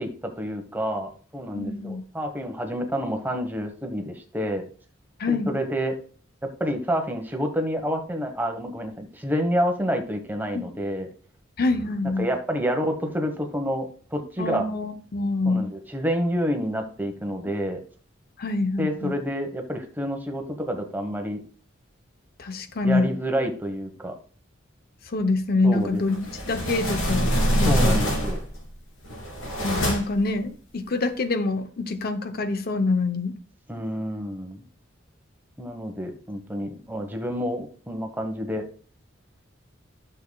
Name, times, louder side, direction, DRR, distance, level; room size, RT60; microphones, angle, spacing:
voice 1, 0.0-4.6 5.3-6.0 6.4-11.1 12.2-14.7 15.5-17.8 18.8-21.4 22.8-24.1 25.6-26.0 27.6-28.4 33.7-34.6 35.6-38.7, equal, 10° right, 4 dB, 1.1 m, -28 dB
voice 2, 1.5-2.0 5.2-5.6 10.5-10.7 11.6-12.3 14.4-15.7 18.4-19.1 22.4-23.1 25.1-26.2 26.5-28.0 29.6-33.3, left 3 dB, 50° left, 9 dB, 0.7 m, -25 dB
sound 1, 26.1-28.6 29.0-30.3, equal, 80° left, 3.0 m, -24 dB
12.0 x 6.8 x 2.3 m, 0.40 s
head